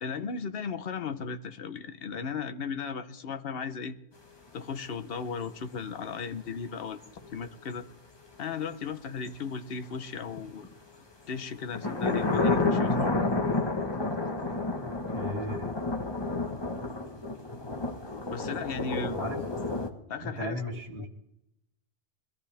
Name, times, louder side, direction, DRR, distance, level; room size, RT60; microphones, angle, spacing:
voice 1, 0.0-4.0 4.5-7.9 8.4-10.7 11.3-13.2 18.3-19.2 20.1-20.6 21.0-21.1, left 5 dB, 60° left, 1.0 m, -36 dB
sound 1, 7.0-7.3 8.8-8.9 9.3-9.4 10.4-10.7 11.7-19.9, left 3 dB, 25° left, 1.2 m, -30 dB
voice 2, 14.8-15.7 18.9-19.4 20.2-21.1, left 1 dB, 65° right, 3.0 m, -36 dB
21.5 x 14.0 x 3.4 m
omnidirectional pair, 1.2 m